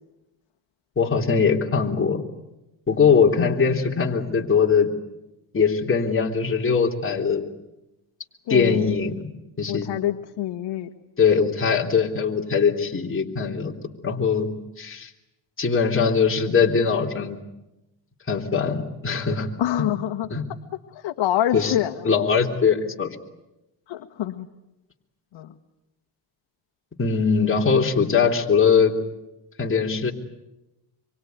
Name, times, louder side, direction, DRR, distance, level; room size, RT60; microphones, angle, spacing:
voice 1, 0.9-2.2 2.9-4.9 5.5-7.4 8.5-9.3 9.6-9.9 11.2-13.7 14.0-14.5 14.8-15.1 15.6-17.4 18.3-19.5 20.3-20.4 21.5-21.7 22.0-23.1 27.0-29.0 29.6-30.1, left 6 dB, 25° left, 0 dB, 3.4 m, -21 dB
voice 2, 8.5-8.9 9.7-10.9 19.6-20.3 20.9-22.1 23.9-24.5 25.3-25.5, left 12 dB, 65° left, 3 dB, 1.6 m, -26 dB
26.0 x 24.0 x 9.5 m, 0.95 s
cardioid pair, 95°, 49 cm